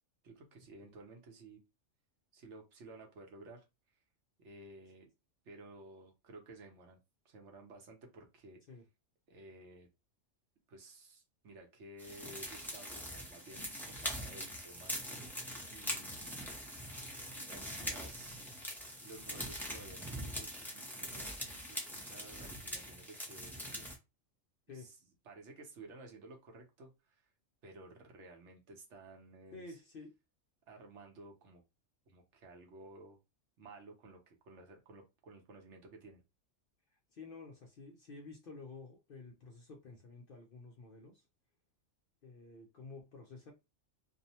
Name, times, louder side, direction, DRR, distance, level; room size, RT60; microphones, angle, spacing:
voice 1, 0.2-1.6 2.3-3.6 4.4-5.1 5.4-7.0 7.2-8.6 9.3-9.9 10.7-15.0 15.7-16.2 16.9-17.1 17.3-18.7 19.0-23.9 24.8-25.0 25.3-27.2 27.6-29.7 30.7-31.6 32.1-33.2 33.6-36.2, right 2 dB, 70° right, 1.0 m, -54 dB
sound 1, 12.0-24.0, equal, 5° left, 0.4 m, -43 dB
voice 2, 29.5-30.2 37.1-41.2 42.2-43.5, left 3 dB, 60° left, 0.6 m, -51 dB
2.6 x 2.1 x 2.7 m
omnidirectional pair, 1.3 m